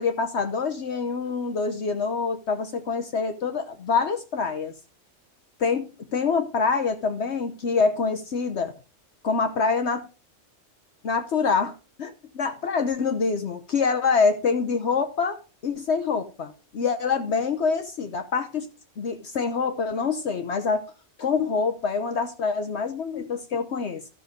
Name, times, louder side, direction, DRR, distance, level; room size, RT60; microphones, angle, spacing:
voice 1, 0.0-4.7 5.6-8.7 9.2-10.1 11.0-18.7 19.0-20.9 21.2-24.0, left 5 dB, 60° left, 1.1 m, -26 dB
13.0 x 6.5 x 5.2 m
omnidirectional pair, 1.3 m